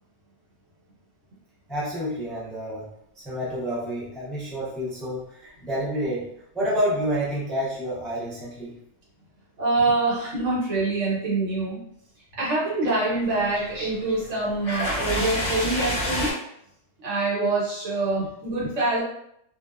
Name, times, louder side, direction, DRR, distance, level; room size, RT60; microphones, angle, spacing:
voice 1, 1.7-2.9 3.2-8.8, equal, ahead, -7 dB, 0.4 m, -29 dB
voice 2, 9.6-11.8 12.4-16.3 17.0-19.0, right 2 dB, 85° right, -6 dB, 1.3 m, -25 dB
sound 1, 13.2-16.3, left 1 dB, 45° left, 0.8 m, -29 dB
2.6 x 2.1 x 2.3 m, 0.74 s
omnidirectional pair, 1.2 m